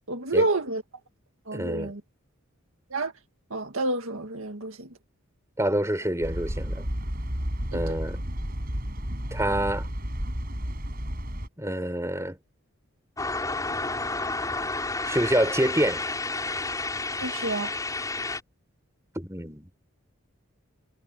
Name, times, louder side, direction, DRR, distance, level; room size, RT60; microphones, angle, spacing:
voice 1, 0.1-0.8 1.5-2.0 2.9-3.1 3.5-4.9 7.7-8.0 17.2-17.7, right 2 dB, 70° right, 1.9 m, -29 dB
voice 2, 1.5-1.9 5.6-6.9 7.7-8.2 9.3-9.9 11.6-12.4 15.1-16.0 19.2-19.7, right 1 dB, 15° right, 5.7 m, -27 dB
sound 1, 6.2-11.5, equal, 45° right, 6.6 m, -32 dB
sound 2, 13.2-18.4, left 3 dB, 15° left, 6.1 m, -31 dB
head